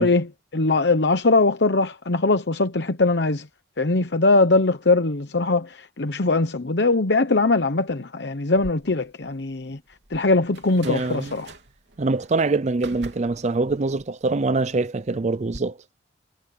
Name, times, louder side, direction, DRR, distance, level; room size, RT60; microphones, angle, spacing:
voice 1, 0.0-3.5 3.8-9.8 10.1-11.5, left 3 dB, 70° left, 1.0 m, -21 dB
sound 1, 8.6-15.6, right 2 dB, 80° right, 3.4 m, -45 dB
voice 2, 10.8-11.3 12.0-15.8, right 3 dB, 40° right, 0.5 m, -24 dB
head